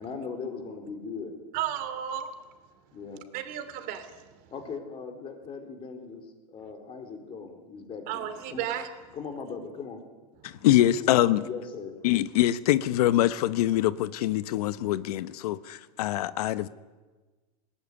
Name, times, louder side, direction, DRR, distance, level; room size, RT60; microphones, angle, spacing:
voice 1, 0.0-1.3 2.9-3.2 4.5-8.7 9.1-10.0 10.7-12.0, left 5 dB, 25° left, 5 dB, 3.9 m, -39 dB
voice 2, 1.5-2.3 3.3-4.1 8.1-8.9, right 10 dB, 45° right, 10 dB, 2.7 m, -33 dB
voice 3, 10.4-11.4 12.0-16.7, left 14 dB, 75° left, 14 dB, 0.9 m, -24 dB
20.0 x 19.0 x 9.8 m, 1.3 s
supercardioid pair, 145°, 20 cm